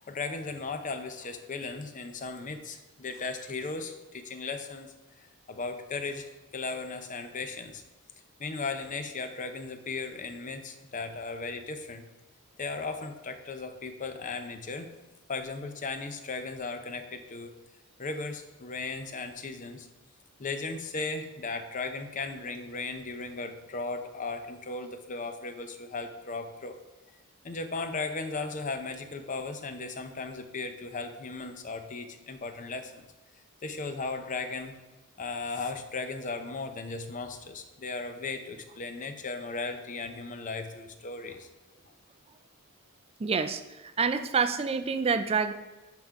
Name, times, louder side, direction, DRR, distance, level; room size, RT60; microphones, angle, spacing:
voice 1, 0.0-4.9 5.5-7.8 8.4-12.1 12.6-14.9 15.3-17.5 18.0-19.9 20.4-26.8 27.4-33.0 33.6-34.7 35.2-41.5, left 3 dB, 35° left, 8 dB, 0.6 m, -36 dB
voice 2, 43.2-45.5, right 5 dB, 25° right, 10 dB, 0.4 m, -27 dB
10.5 x 3.7 x 4.6 m, 1.1 s
head